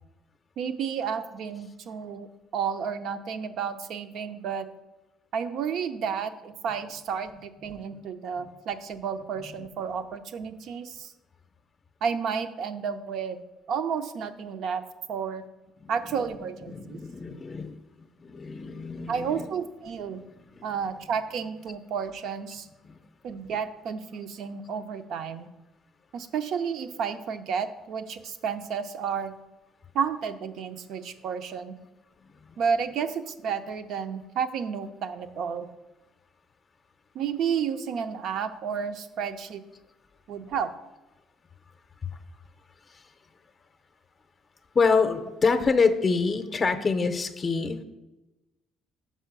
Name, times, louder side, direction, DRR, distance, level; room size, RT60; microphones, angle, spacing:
voice 1, 0.6-2.3 2.5-4.7 5.3-11.1 12.0-14.8 15.1-15.4 15.9-17.0 19.1-20.2 20.6-22.7 23.2-25.5 26.1-29.3 29.9-31.7 32.6-35.7 37.1-39.6 40.3-40.7, right 7 dB, 65° right, 10 dB, 0.6 m, -31 dB
voice 2, 16.6-17.8 18.2-19.5 20.5-20.7 22.8-23.0 42.9-43.0 44.7-47.8, left 4 dB, 35° left, 8 dB, 0.6 m, -26 dB
5.6 x 5.6 x 6.1 m, 1.0 s
cardioid pair, 90°, 0 cm